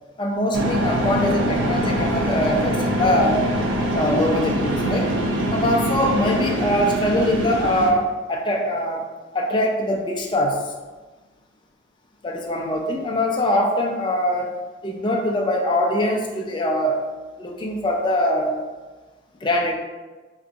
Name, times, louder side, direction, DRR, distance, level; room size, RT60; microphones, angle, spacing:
voice 1, 0.2-3.4 3.9-5.1 5.5-9.0 9.3-10.6 12.2-14.6 14.8-17.0 17.4-18.6 19.4-19.7, left 1 dB, 25° left, 1 dB, 0.3 m, -22 dB
sound 1, 0.5-7.9, equal, 70° right, 0.5 m, -23 dB
2.5 x 2.3 x 3.7 m, 1.3 s
head